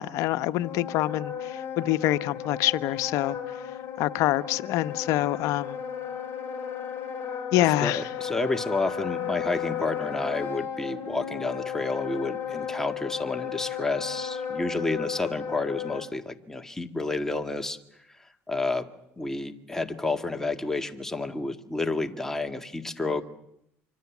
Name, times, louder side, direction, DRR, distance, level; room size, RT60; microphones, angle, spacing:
voice 1, 0.0-3.4 4.0-5.8 7.5-8.0, left 15 dB, 70° left, 0.9 m, -26 dB
Wind instrument woodwind instrument, 0.6-16.1, left 8 dB, 45° left, 6.4 m, -34 dB
voice 2, 7.8-17.8 18.5-18.9 19.2-23.2, left 2 dB, 10° left, 1.9 m, -30 dB
25.5 x 24.5 x 7.3 m
supercardioid pair, 95°, 6 cm